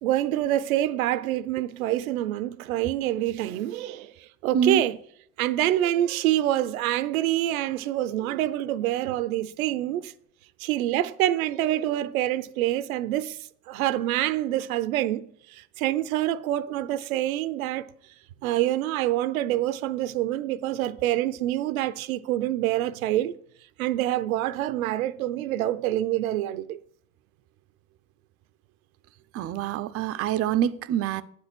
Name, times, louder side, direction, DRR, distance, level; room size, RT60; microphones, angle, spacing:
voice 1, 0.0-5.0 5.4-10.1 10.6-13.4 13.7-17.9 18.4-23.3 23.8-26.8, right 13 dB, 80° right, 0.6 m, -26 dB
voice 2, 29.3-31.2, right 9 dB, 35° right, 0.5 m, -25 dB
8.4 x 4.3 x 6.0 m
hypercardioid pair, 85°, 41 cm